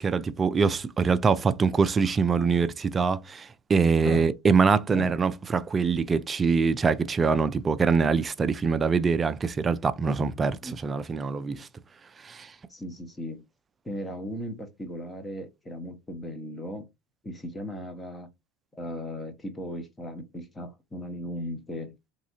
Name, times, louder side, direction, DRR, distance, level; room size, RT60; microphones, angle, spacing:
voice 1, 0.0-11.7 12.2-12.5, right 5 dB, 20° right, 0.3 m, -24 dB
voice 2, 12.7-13.4 13.8-16.9 17.2-18.3 18.7-21.9, equal, 15° left, 0.8 m, -37 dB
3.1 x 2.7 x 2.8 m
supercardioid pair, 125°, 0 cm